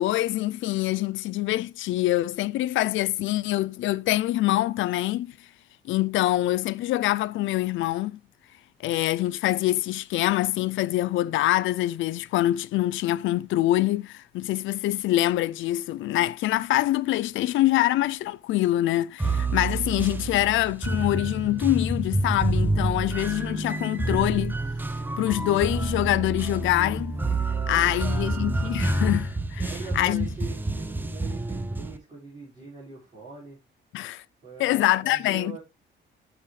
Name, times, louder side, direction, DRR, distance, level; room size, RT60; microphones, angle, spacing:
voice 1, 0.0-5.3 5.8-8.2 8.8-24.6 25.2-27.2 27.7-30.3 33.9-34.2 34.6-35.6, left 15 dB, 75° left, 0.5 m, -25 dB
sound 1, 19.2-32.0, right 2 dB, 10° right, 0.6 m, -28 dB
voice 2, 27.5-28.6 29.6-33.6 34.4-35.6, right 4 dB, 25° right, 4.9 m, -42 dB
12.5 x 5.0 x 3.2 m
cardioid pair, 165°, 20 cm